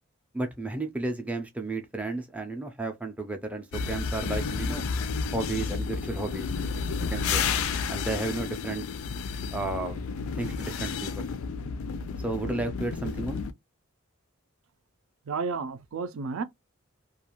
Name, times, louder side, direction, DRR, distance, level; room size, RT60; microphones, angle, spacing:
voice 1, 0.3-4.8 5.3-6.5 7.1-7.5 7.9-8.8 9.5-10.0 10.4-11.3 12.2-13.4, right 2 dB, 5° right, 0.4 m, -33 dB
sound 1, 3.7-13.5, left 5 dB, 80° left, 0.4 m, -31 dB
voice 2, 15.3-16.4, right 4 dB, 75° right, 0.4 m, -32 dB
2.4 x 2.3 x 2.9 m
head